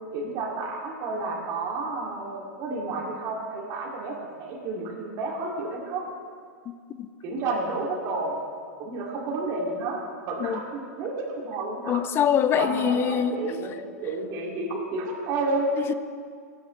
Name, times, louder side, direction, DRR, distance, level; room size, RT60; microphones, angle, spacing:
voice 1, 0.1-6.1 7.2-8.4 8.8-12.0 12.6-13.7 14.0-15.7, right 3 dB, 40° right, 2.6 m, -31 dB
voice 2, 11.9-13.5 15.8-15.9, left 8 dB, 25° left, 0.6 m, -24 dB
19.5 x 9.2 x 3.2 m
hypercardioid pair, 135°, 9 cm